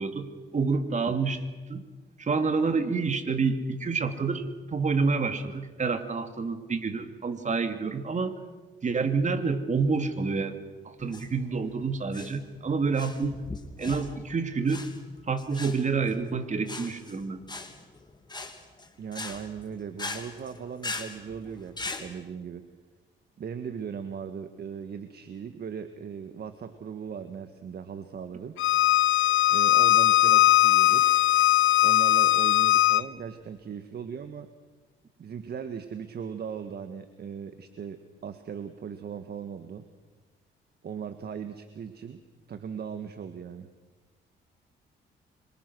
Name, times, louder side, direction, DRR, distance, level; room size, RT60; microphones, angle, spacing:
voice 1, 0.0-1.4 1.7-1.9 2.2-8.3 8.8-10.6 10.8-13.4 13.8-14.9 15.3-17.4, right 4 dB, 35° right, 8 dB, 2.6 m, -28 dB
sound 1, 11.0-22.1, left 3 dB, 20° left, 2.9 m, -40 dB
voice 2, 19.0-22.6 23.4-28.5 29.5-31.1 31.8-34.5 35.2-39.8 40.8-42.2 42.5-43.7, right 7 dB, 55° right, 9 dB, 1.6 m, -38 dB
Bowed string instrument, 28.6-33.0, left 14 dB, 80° left, 0.8 m, -20 dB
26.0 x 24.5 x 6.3 m, 1.3 s
cardioid pair, 90°, 20 cm